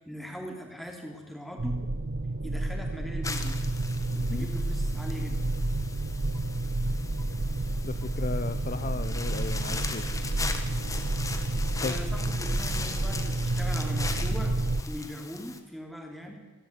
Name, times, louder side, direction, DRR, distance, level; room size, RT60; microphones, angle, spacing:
voice 1, 0.0-1.8 2.4-3.7 4.1-5.4 11.9-14.6 14.9-16.4, equal, ahead, 1 dB, 3.0 m, -40 dB
sound 1, 1.6-14.8, right 2 dB, 60° right, 1.0 m, -30 dB
sound 2, 3.2-15.6, left 4 dB, 15° left, 1.4 m, -39 dB
voice 2, 7.8-10.1 11.8-12.0, left 3 dB, 35° left, 11 dB, 0.5 m, -35 dB
27.5 x 12.0 x 8.0 m, 1.2 s
head